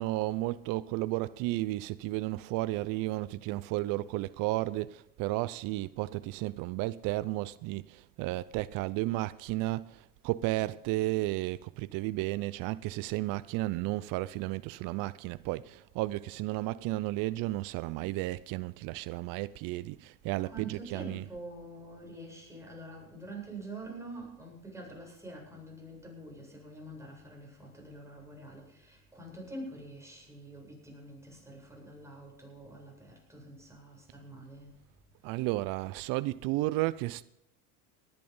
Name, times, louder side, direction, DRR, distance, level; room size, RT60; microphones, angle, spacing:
voice 1, 0.0-21.3 35.2-37.2, right 18 dB, 45° right, 0.6 m, -33 dB
voice 2, 20.4-34.7, right 2 dB, 5° right, 7.8 m, -46 dB
19.0 x 11.0 x 5.5 m
hypercardioid pair, 100°, 45 cm